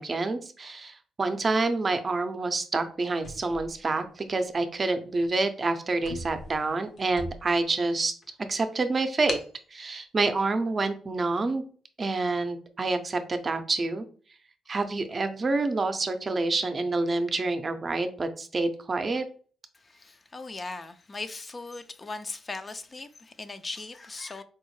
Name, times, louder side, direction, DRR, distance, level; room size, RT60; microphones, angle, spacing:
voice 1, 0.0-8.1 8.5-9.4 9.7-11.6 12.0-14.0 14.7-19.3, right 3 dB, 40° right, 0.5 m, -27 dB
sound 1, 3.2-4.5 5.1-5.3 5.6-5.7 6.0-7.7 8.2-8.3 9.3-9.6, left 2 dB, 60° left, 0.7 m, -40 dB
voice 2, 19.7-24.4, left 3 dB, 35° left, 0.4 m, -39 dB
4.5 x 2.0 x 3.1 m
cardioid pair, 75°, 0 cm